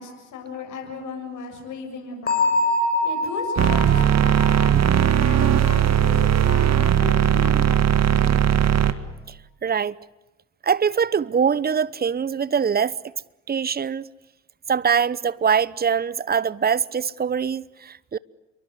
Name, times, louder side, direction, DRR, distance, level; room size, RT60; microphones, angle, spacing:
voice 1, 0.0-2.5 3.0-4.0 4.3-8.5, left 4 dB, 55° left, 7.6 m, -36 dB
Bell, 2.3-5.9, left 2 dB, 25° left, 6.1 m, -25 dB
sound 1, 3.6-8.9, right 10 dB, 45° right, 1.9 m, -18 dB
voice 2, 9.6-9.9 10.6-13.0 13.5-14.1 14.7-18.2, right 7 dB, 25° right, 0.9 m, -23 dB
28.0 x 23.5 x 8.2 m
hypercardioid pair, 60°, 36 cm